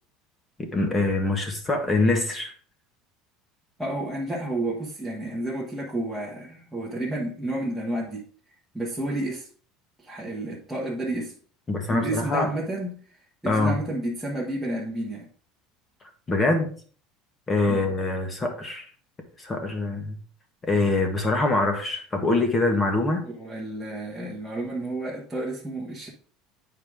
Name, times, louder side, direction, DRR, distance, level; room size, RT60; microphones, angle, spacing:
voice 1, 0.6-2.5 11.7-12.5 13.4-13.8 16.3-16.7 17.5-18.9 19.4-20.1 20.7-23.2, left 2 dB, 20° left, 1.4 m, -24 dB
voice 2, 3.8-8.3 8.7-9.5 10.0-11.3 11.9-13.0 13.4-15.3 17.7-17.9 23.2-26.1, right 1 dB, ahead, 1.4 m, -31 dB
8.8 x 4.9 x 3.7 m
cardioid pair, 150°, 0 cm